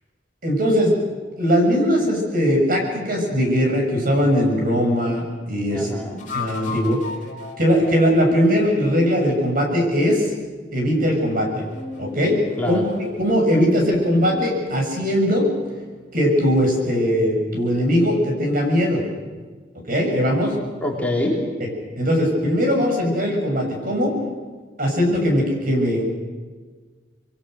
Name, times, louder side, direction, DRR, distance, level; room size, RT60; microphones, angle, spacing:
voice 1, 0.4-1.0 1.4-5.9 6.3-7.0 7.6-10.3 10.7-11.6 12.0-12.4 12.7-12.8 13.2-15.5 16.1-19.0 19.9-20.5 22.0-24.1 24.8-26.1, equal, 50° right, 1 dB, 7.2 m, -20 dB
voice 2, 5.7-6.2 12.6-12.8 20.8-21.5, left 1 dB, 10° left, -2 dB, 3.6 m, -25 dB
sound 1, 6.2-9.6 11.5-16.4, left 4 dB, 45° left, 4.3 m, -37 dB
27.0 x 22.5 x 6.5 m, 1.5 s
head